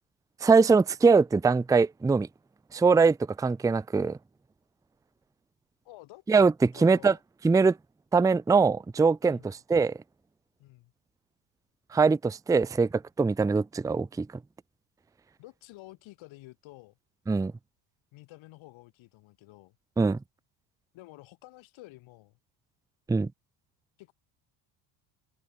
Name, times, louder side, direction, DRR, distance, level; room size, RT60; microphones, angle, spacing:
voice 1, 0.4-2.3 2.7-4.2 6.3-7.1 7.4-7.8 8.1-9.4 9.7-9.9 11.9-14.3 17.3-17.5 20.0-20.2 23.1-23.3, right 4 dB, 5° right, 0.5 m, -22 dB
voice 2, 5.8-6.2 6.7-7.2 9.2-9.5 10.6-10.9 15.4-17.0 18.1-19.8 20.9-22.4 24.0-24.1, left 19 dB, 70° left, 6.2 m, -50 dB
cardioid pair, 110°, 48 cm